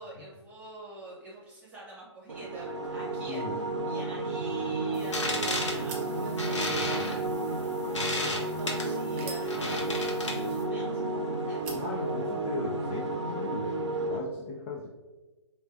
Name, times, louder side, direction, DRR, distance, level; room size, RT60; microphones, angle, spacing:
voice 1, 0.0-7.4 8.1-11.0 11.5-11.6, right 2 dB, 10° right, -6 dB, 1.1 m, -45 dB
sound 1, 2.3-14.2, right 2 dB, 75° right, 0.6 m, -32 dB
voice 2, 3.3-3.6 11.7-13.7 14.1-14.9, left 4 dB, 20° left, -4 dB, 0.4 m, -38 dB
sound 2, 4.3-12.6, right 4 dB, 25° right, 0.6 m, -51 dB
sound 3, 5.0-10.6, left 2 dB, 75° left, 0.9 m, -34 dB
4.4 x 2.4 x 2.5 m, 1.2 s
figure-of-eight pair, 140°, 15 cm